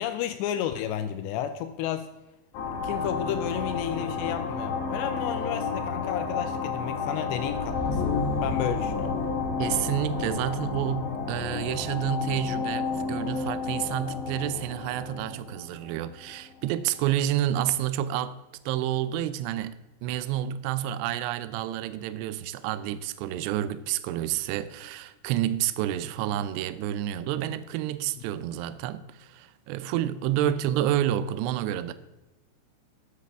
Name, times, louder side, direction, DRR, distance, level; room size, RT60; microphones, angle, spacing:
voice 1, 0.0-2.1 2.8-8.1 8.4-9.2, left 10 dB, 85° left, 2.5 m, -32 dB
sound 1, 2.5-16.7, left 4 dB, 65° left, 3.7 m, -31 dB
voice 2, 9.6-18.4 18.7-19.8 20.0-31.9, right 11 dB, 85° right, 2.4 m, -29 dB
13.0 x 9.9 x 3.6 m
omnidirectional pair, 5.7 m